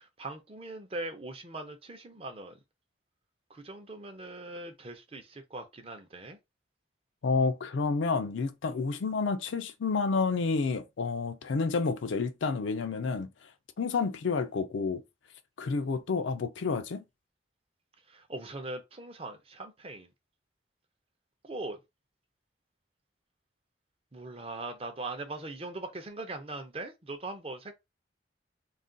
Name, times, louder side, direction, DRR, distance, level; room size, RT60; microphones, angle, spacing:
voice 1, 0.0-2.6 3.5-6.4 18.1-20.1 21.4-21.8 24.1-27.7, right 2 dB, 30° right, 0.5 m, -40 dB
voice 2, 7.2-13.3 13.8-15.0 15.6-17.0, left 4 dB, 80° left, 0.4 m, -29 dB
2.4 x 2.2 x 3.7 m
head